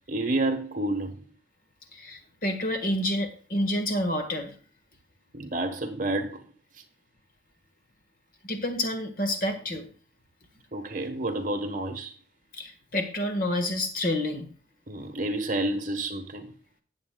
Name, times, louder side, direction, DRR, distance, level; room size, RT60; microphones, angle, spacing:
voice 1, 0.1-1.2 5.3-6.4 10.7-12.1 14.9-16.5, right 2 dB, 45° right, 1.2 m, -29 dB
voice 2, 1.9-4.5 8.4-9.9 12.5-14.5, left 1 dB, 45° left, 1.5 m, -29 dB
17.0 x 7.6 x 2.3 m
head